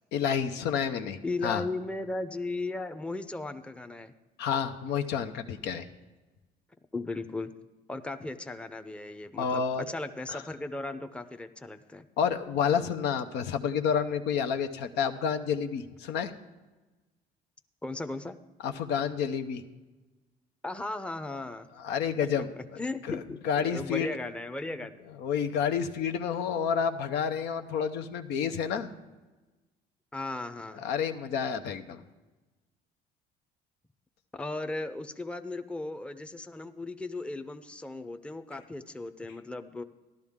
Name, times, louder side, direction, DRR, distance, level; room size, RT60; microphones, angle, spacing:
voice 1, 0.1-1.6 4.4-5.9 9.4-9.8 10.3-10.4 12.2-16.3 18.6-19.6 21.8-22.5 23.1-23.2 23.4-24.1 25.2-28.9 30.7-32.0, left 7 dB, 85° left, 8 dB, 0.8 m, -29 dB
voice 2, 1.2-4.1 6.9-7.5 7.9-12.1 17.8-18.4 20.6-21.7 22.2-22.3 22.6-25.0 30.1-30.8 34.3-39.8, left 2 dB, 5° left, 10 dB, 0.6 m, -36 dB
14.0 x 12.0 x 3.6 m, 1.2 s
cardioid pair, 110°, 17 cm